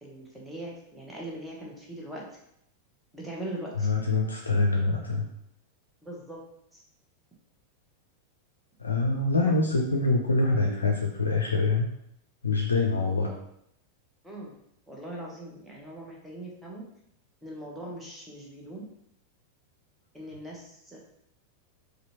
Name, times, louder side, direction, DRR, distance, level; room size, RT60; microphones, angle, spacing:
voice 1, 0.0-2.2 3.1-3.9 6.0-6.4 6.7-6.8 9.4-9.5 13.3-13.4 14.2-14.5 14.9-16.8 17.4-18.8 20.1-21.0, right 1 dB, 5° right, -3 dB, 1.1 m, -40 dB
voice 2, 3.8-5.3 8.8-11.9 12.4-13.3, left 3 dB, 75° left, 1 dB, 0.4 m, -25 dB
4.2 x 2.6 x 2.8 m, 0.75 s
figure-of-eight pair, 90°, 0 cm